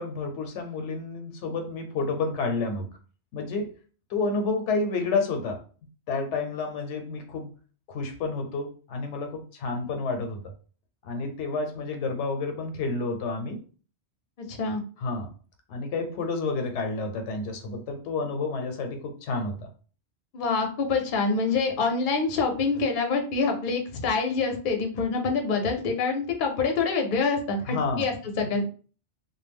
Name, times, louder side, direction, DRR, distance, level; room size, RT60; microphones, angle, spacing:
voice 1, 0.0-2.9 3.3-3.7 4.1-5.6 6.1-7.5 7.9-10.4 11.0-13.6 15.0-15.3 15.7-19.7 27.6-28.1, left 3 dB, 85° left, 5 dB, 0.9 m, -30 dB
voice 2, 14.4-14.8 20.3-28.6, left 4 dB, 55° left, 3 dB, 0.7 m, -26 dB
2.2 x 2.0 x 3.4 m, 0.39 s
omnidirectional pair, 1.2 m